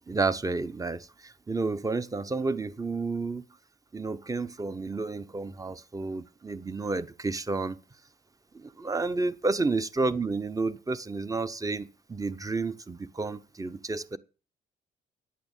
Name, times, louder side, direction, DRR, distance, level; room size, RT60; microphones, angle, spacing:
voice 1, 0.1-3.4 3.9-7.8 8.5-14.2, right 3 dB, 15° right, 0.8 m, -31 dB
10.5 x 8.6 x 7.1 m
cardioid pair, 90°, 20 cm